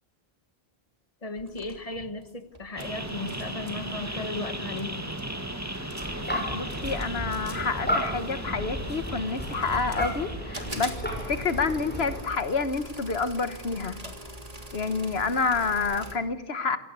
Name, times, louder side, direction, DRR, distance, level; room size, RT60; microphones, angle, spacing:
voice 1, 1.2-5.0, left 2 dB, 35° left, 10 dB, 1.6 m, -36 dB
sound 1, 1.4-2.8 3.1-3.8 4.5-4.6 4.8-5.3 5.7-6.3 6.7-8.5 9.0-10.2 10.5-16.2, right 1 dB, 35° right, 3.3 m, -42 dB
sound 2, 2.8-10.9, right 1 dB, 15° right, 2.3 m, -36 dB
sound 3, 6.0-12.2, equal, 10° left, 6.5 m, -33 dB
voice 2, 6.5-14.0 14.7-16.8, left 4 dB, 80° left, 12 dB, 1.6 m, -28 dB
27.0 x 17.5 x 8.2 m, 0.83 s
omnidirectional pair, 1.0 m